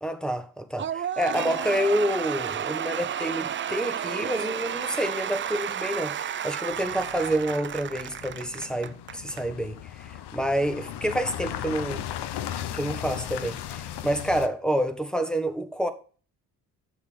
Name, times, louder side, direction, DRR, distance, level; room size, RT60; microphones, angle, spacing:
voice 1, 0.0-12.1 12.7-15.9, equal, ahead, 1.4 m, -28 dB
Cheering / Applause / Crowd, 0.8-9.4, right 9 dB, 30° right, 0.4 m, -32 dB
sound 1, 6.7-14.5, left 11 dB, 60° left, 0.9 m, -37 dB
8.6 x 6.5 x 5.3 m
hypercardioid pair, 50°, 45 cm